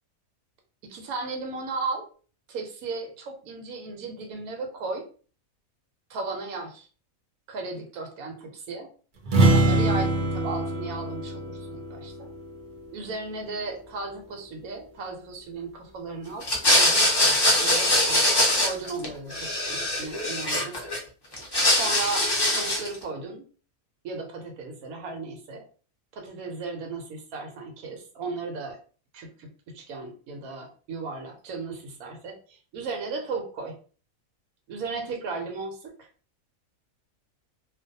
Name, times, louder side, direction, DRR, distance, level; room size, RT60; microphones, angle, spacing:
voice 1, 0.8-2.0 2.5-5.0 6.1-6.9 7.5-8.9 9.5-12.3 12.9-20.8 21.8-23.5 24.0-25.6 26.1-28.8 29.1-29.5 29.7-33.8 34.7-36.1, right 3 dB, 90° right, 4 dB, 1.1 m, -35 dB
sound 1, 9.2-13.0, right 2 dB, 50° right, 0.6 m, -24 dB
sound 2, 16.4-19.0 19.3-21.0 21.3-22.9, left 1 dB, 30° left, 0.4 m, -22 dB
2.5 x 2.2 x 2.6 m, 0.39 s
omnidirectional pair, 1.5 m